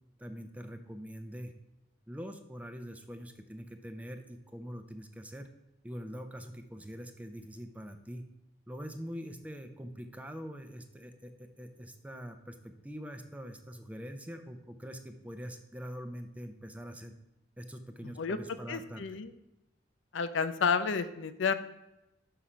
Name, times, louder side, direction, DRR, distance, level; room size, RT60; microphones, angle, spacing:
voice 1, 0.2-1.5 2.1-5.5 5.8-8.3 8.7-17.1 17.6-19.2, equal, 10° right, 7 dB, 0.5 m, -44 dB
voice 2, 18.0-18.4 18.7-19.3 20.1-21.5, left 5 dB, 90° left, 11 dB, 0.5 m, -31 dB
5.8 x 5.6 x 4.9 m, 0.92 s
head